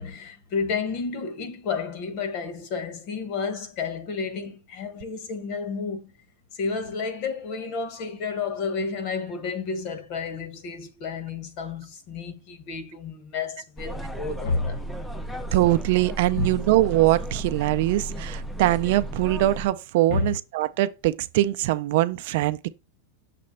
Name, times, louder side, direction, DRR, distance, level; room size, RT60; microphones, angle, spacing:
voice 1, 0.0-6.1 6.5-14.8 16.4-16.6 20.1-20.4, left 4 dB, 40° left, 1.1 m, -31 dB
sound 1, 13.8-19.7, right 1 dB, 5° left, 0.4 m, -34 dB
voice 2, 15.5-22.7, right 16 dB, 50° right, 0.5 m, -22 dB
6.7 x 3.1 x 5.2 m
supercardioid pair, 170°, 0 cm